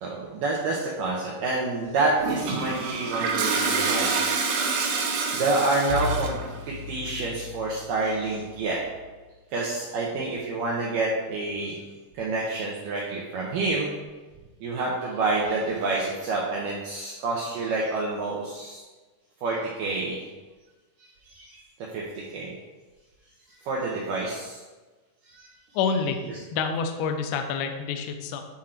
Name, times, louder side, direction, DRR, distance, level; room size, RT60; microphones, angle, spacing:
voice 1, 0.0-4.1 5.3-6.4 6.7-8.8 9.5-11.8 12.1-13.9 14.6-18.8 19.4-20.2 21.0-21.1 21.3-21.6 21.9-22.5 23.6-24.6 25.2-25.5, right 3 dB, 90° right, -3 dB, 1.9 m, -28 dB
Toilet flush, 2.2-6.5, right 4 dB, 70° right, 2.2 m, -27 dB
Bowed string instrument, 5.9-9.0, left 3 dB, 65° left, 1.9 m, -35 dB
voice 2, 25.7-26.2 26.5-28.4, left 5 dB, 80° left, 5 dB, 2.2 m, -27 dB
10.0 x 3.8 x 4.4 m, 1.3 s
omnidirectional pair, 5.1 m